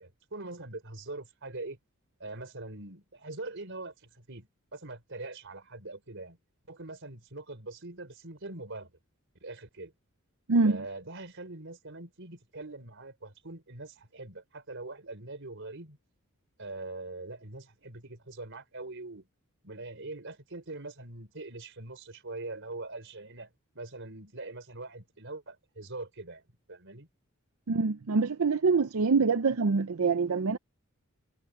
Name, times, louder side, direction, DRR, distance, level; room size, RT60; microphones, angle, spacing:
voice 1, 0.0-1.8 2.2-6.4 6.7-8.9 9.4-9.9 10.6-16.0 16.6-19.3 19.6-23.5 23.7-26.4 26.7-27.1, right 2 dB, 60° right, 4.8 m, -43 dB
voice 2, 10.5-10.8 27.7-30.6, right 4 dB, 80° right, 0.6 m, -25 dB
head